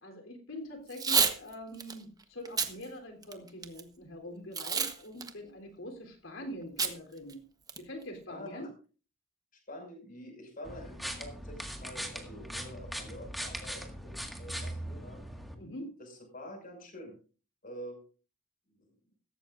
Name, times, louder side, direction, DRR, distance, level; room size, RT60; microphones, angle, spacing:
voice 1, 0.0-7.4 7.8-8.7 15.6-15.9, equal, 85° left, 3 dB, 3.6 m, -44 dB
Packing tape duct tape / Tearing, 0.9-1.4 1.8-1.9 2.4-2.7 3.2-3.8 4.5-4.9 5.2-5.3 6.8-6.9 7.3-7.4 7.7-8.0, right 5 dB, 20° right, 1.1 m, -28 dB
voice 2, 8.3-8.6 9.7-15.2 16.3-17.1 17.6-18.0, equal, 45° left, 3 dB, 5.8 m, -46 dB
sound 1, 10.6-15.5, equal, ahead, 1.8 m, -40 dB
16.0 x 14.5 x 2.6 m, 0.37 s
head